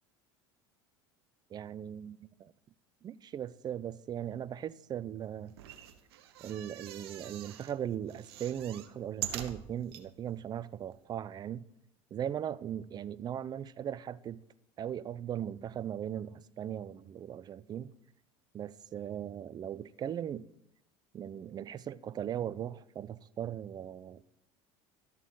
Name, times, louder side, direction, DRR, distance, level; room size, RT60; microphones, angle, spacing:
voice 1, 1.5-2.5 3.0-5.6 6.4-11.7 12.1-14.4 14.8-17.9 18.5-20.5 21.1-24.2, right 10 dB, 35° right, 0.4 m, -38 dB
sound 1, 5.5-7.7 8.1-10.0 10.6-10.7 10.9-11.0, right 11 dB, 85° right, 0.8 m, -43 dB
12.5 x 6.6 x 3.8 m
supercardioid pair, 95°, 13 cm